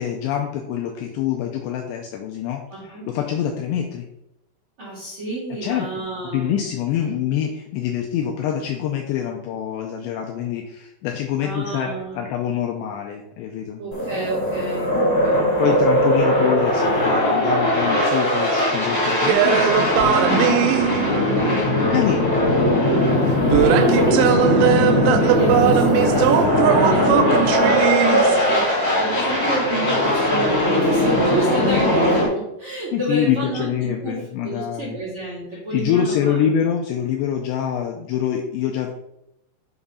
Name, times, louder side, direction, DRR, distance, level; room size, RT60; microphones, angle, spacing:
voice 1, 0.0-4.1 5.6-11.9 12.2-13.8 15.6-20.7 21.8-22.4 32.9-35.0 35.7-38.9, left 9 dB, 85° left, 1 dB, 2.5 m, -25 dB
voice 2, 2.7-3.0 4.8-6.5 11.4-12.2 13.8-15.8 23.4-34.2 34.4-36.4, right 2 dB, 35° right, -9 dB, 2.4 m, -29 dB
sound 1, 13.9-32.3, left 1 dB, 35° left, 1.3 m, -19 dB
sound 2, 19.2-21.6 23.5-28.8, right 11 dB, 90° right, 3.1 m, -20 dB
7.0 x 3.7 x 5.5 m, 0.82 s
omnidirectional pair, 5.5 m